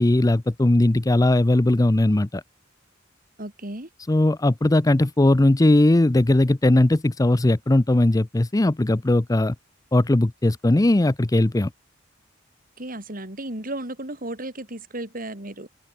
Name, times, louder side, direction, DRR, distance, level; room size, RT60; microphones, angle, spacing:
voice 1, 0.0-2.4 4.1-9.5 9.9-11.7, left 1 dB, 20° left, 0.5 m, -19 dB
voice 2, 3.4-3.9 12.8-15.7, right 1 dB, 45° right, 4.8 m, -34 dB
open air
head